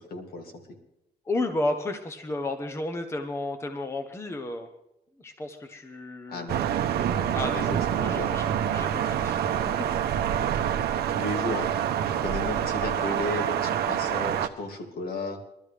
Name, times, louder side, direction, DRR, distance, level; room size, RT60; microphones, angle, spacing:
voice 1, 0.1-0.5 6.3-6.7 7.5-8.4 11.1-15.4, left 2 dB, 65° left, 2 dB, 2.4 m, -34 dB
voice 2, 1.3-4.7 5.2-6.5 7.3-9.9, left 2 dB, 15° left, 6 dB, 0.8 m, -33 dB
Thunder, 6.5-14.5, right 9 dB, 80° right, 0.7 m, -27 dB
22.5 x 12.5 x 3.3 m, 0.85 s
cardioid pair, 150°, 16 cm